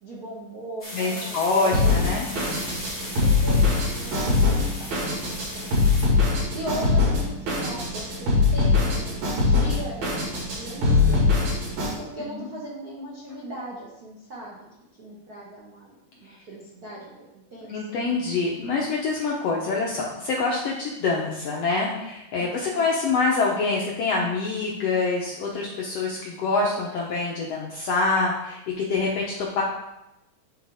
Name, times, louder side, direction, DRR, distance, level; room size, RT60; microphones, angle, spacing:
voice 1, 0.0-2.1 3.1-5.9 6.5-11.2 12.0-14.7 15.0-15.9 16.2-17.8 22.4-22.9, right 1 dB, 85° right, -6 dB, 0.8 m, -39 dB
sound 1, 0.8-6.1, left 1 dB, 5° left, 2.1 m, -37 dB
voice 2, 0.9-2.3 12.2-12.5 17.7-29.6, left 3 dB, 75° left, -3 dB, 1.4 m, -25 dB
Drum kit, 1.7-11.9, left 3 dB, 60° right, 3.0 m, -22 dB
10.0 x 4.7 x 3.5 m, 0.90 s
omnidirectional pair, 3.9 m